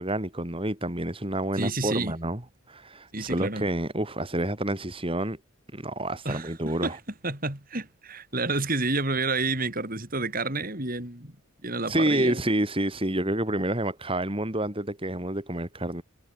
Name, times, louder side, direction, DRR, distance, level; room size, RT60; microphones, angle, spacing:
voice 1, 0.0-2.4 2.7-5.4 5.7-7.0 11.9-16.0, right 1 dB, 25° right, 3.4 m, -28 dB
voice 2, 1.6-2.1 3.1-3.6 6.2-7.0 7.2-11.4 11.6-12.4, right 3 dB, 40° right, 4.6 m, -29 dB
head